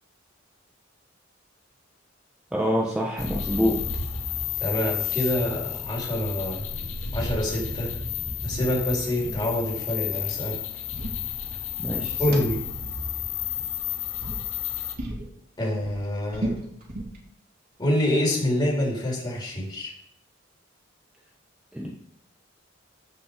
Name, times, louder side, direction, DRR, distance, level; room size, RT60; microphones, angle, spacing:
voice 1, 2.5-3.8 11.8-12.4 21.7-21.9, equal, 5° right, -4 dB, 1.2 m, -26 dB
sound 1, 3.2-14.9, left 8 dB, 90° left, 2.3 m, -31 dB
voice 2, 4.6-6.6 7.1-7.9 8.4-10.6 12.2-12.6 15.6-16.5 17.8-19.9, left 1 dB, 25° left, -4 dB, 4.0 m, -26 dB
sound 2, 8.5-8.7 9.0-9.5 10.6-11.9 12.3-12.4 13.5-13.8 14.2-14.4 15.0-15.3 15.6-17.2, right 1 dB, 50° right, 3.3 m, -34 dB
14.0 x 5.7 x 5.1 m, 0.76 s
head